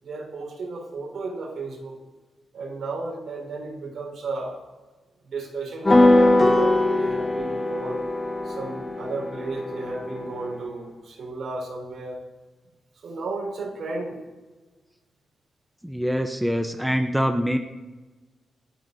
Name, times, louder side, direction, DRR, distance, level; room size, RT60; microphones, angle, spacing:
voice 1, 0.0-2.0 2.5-4.6 5.2-8.0 8.4-12.2 12.9-14.2, right 3 dB, 75° right, 1 dB, 4.8 m, -33 dB
sound 1, 5.8-10.6, left 1 dB, 25° left, 1.6 m, -21 dB
voice 2, 15.8-17.6, equal, 5° right, 6 dB, 0.8 m, -24 dB
27.5 x 9.9 x 2.8 m, 1.2 s
cardioid pair, 85°, 0 cm